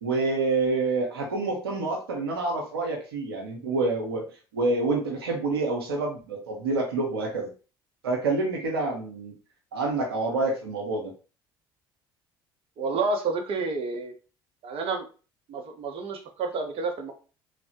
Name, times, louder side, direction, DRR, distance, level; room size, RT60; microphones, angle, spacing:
voice 1, 0.0-7.5 8.0-9.3 9.7-11.1, right 3 dB, 85° right, 1 dB, 0.6 m, -27 dB
voice 2, 12.8-14.1 14.6-15.0 15.5-17.1, right 4 dB, 50° right, 4 dB, 0.6 m, -29 dB
3.1 x 2.0 x 2.7 m, 0.35 s
hypercardioid pair, 60°, 12 cm